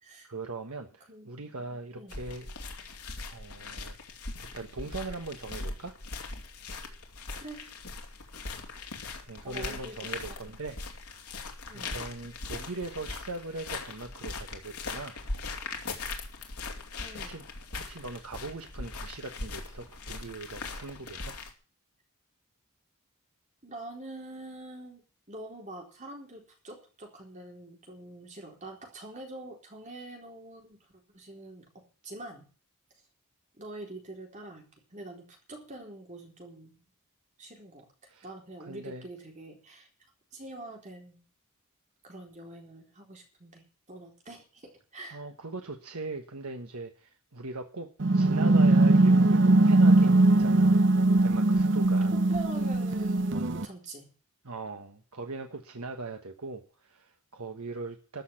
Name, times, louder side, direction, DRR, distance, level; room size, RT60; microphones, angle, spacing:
voice 1, 0.2-2.5 3.3-3.9 4.5-5.9 8.5-8.7 9.3-10.8 11.7-15.2 17.2-17.4 17.7-21.4 38.1-38.3 38.6-39.1 45.1-50.9 51.2-52.1 54.4-58.2, right 3 dB, 80° right, 5 dB, 1.3 m, -40 dB
voice 2, 1.7-2.2 7.3-7.7 9.4-10.5 11.7-11.9 17.0-17.4 23.6-30.8 31.1-32.5 33.5-36.8 37.4-37.9 38.2-39.9 40.3-41.2 42.0-45.2 52.1-54.1, right 2 dB, 35° right, 1 dB, 4.1 m, -45 dB
sound 1, 2.1-21.5, left 3 dB, 85° left, 2.8 m, -40 dB
sound 2, 48.0-53.7, right 2 dB, 55° right, 0.8 m, -21 dB
14.0 x 6.6 x 10.0 m, 0.38 s
head